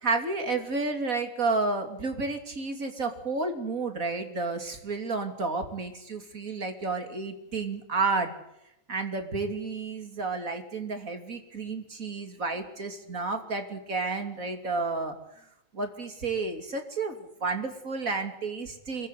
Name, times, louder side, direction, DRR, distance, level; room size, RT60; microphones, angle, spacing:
voice 1, 0.0-8.3 8.9-15.2 15.7-19.1, right 3 dB, 25° right, 5 dB, 2.9 m, -31 dB
25.5 x 15.0 x 8.3 m, 0.85 s
omnidirectional pair, 3.4 m